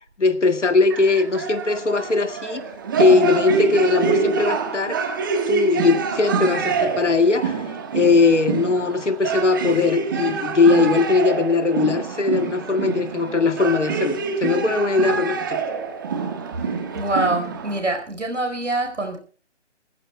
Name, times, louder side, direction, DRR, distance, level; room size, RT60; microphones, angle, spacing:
voice 1, 0.2-2.6 3.0-5.0 5.5-15.6, left 4 dB, 75° left, 2.0 m, -20 dB
sound 1, 0.9-17.8, right 5 dB, 15° right, 1.4 m, -26 dB
voice 2, 16.6-19.2, right 2 dB, 80° right, 4.4 m, -25 dB
27.0 x 15.0 x 2.2 m
figure-of-eight pair, 165°, 36 cm